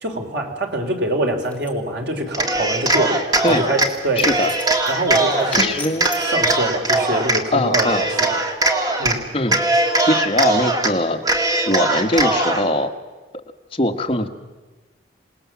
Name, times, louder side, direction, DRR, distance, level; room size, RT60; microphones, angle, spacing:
voice 1, 0.0-4.3 4.9-5.8 6.3-8.3 9.0-9.2, right 1 dB, 70° right, 3 dB, 3.4 m, -24 dB
sound 1, 1.4-1.7 3.4-6.5, left 3 dB, 10° left, 2.4 m, -38 dB
Cheering, 2.3-3.9 4.2-5.7 6.0-7.4 7.7-9.2 9.4-10.9 11.2-12.7, right 2 dB, 20° right, 1.9 m, -20 dB
voice 2, 4.2-4.5 5.5-6.1 7.5-8.1 9.3-9.6 10.0-11.2 11.7-12.9 13.7-14.3, left 1 dB, 30° left, 4 dB, 1.4 m, -21 dB
27.5 x 19.0 x 7.3 m, 1.2 s
head